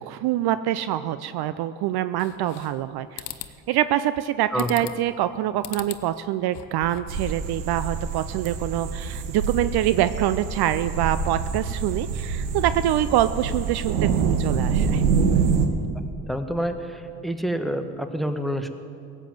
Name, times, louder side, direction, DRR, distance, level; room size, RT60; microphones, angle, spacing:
voice 1, 0.0-3.2 3.7-15.0, right 12 dB, 55° right, 13 dB, 0.6 m, -25 dB
sound 1, 2.2-2.9 3.2-3.5 4.6-5.1 5.6-6.0 6.4-7.5, left 13 dB, 55° left, 0.9 m, -38 dB
sound 2, 7.1-15.7, right 5 dB, 80° right, 1.2 m, -26 dB
voice 2, 16.3-18.7, equal, ahead, 8 dB, 1.1 m, -28 dB
17.0 x 7.6 x 7.7 m, 2.4 s
hypercardioid pair, 65°, 48 cm